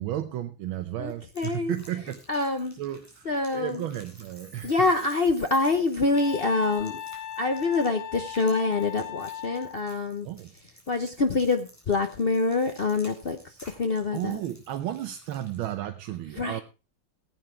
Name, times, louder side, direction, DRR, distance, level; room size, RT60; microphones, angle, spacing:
voice 1, 0.0-4.9 10.2-10.5 14.1-16.6, right 12 dB, 75° right, 9 dB, 1.6 m, -34 dB
voice 2, 1.0-1.7 2.3-2.7 3.3-3.8 4.6-6.9 7.4-10.3 10.9-13.4 13.8-14.4 16.4-16.6, left 3 dB, 70° left, 7 dB, 0.5 m, -26 dB
sound 1, 1.1-15.7, equal, 5° left, 3.9 m, -54 dB
Chime, 3.9-7.5 7.8-7.9, equal, 30° left, 5.7 m, -54 dB
Wind instrument woodwind instrument, 6.1-9.8, left 10 dB, 85° left, 1.7 m, -38 dB
15.5 x 8.8 x 4.5 m, 0.32 s
omnidirectional pair, 2.3 m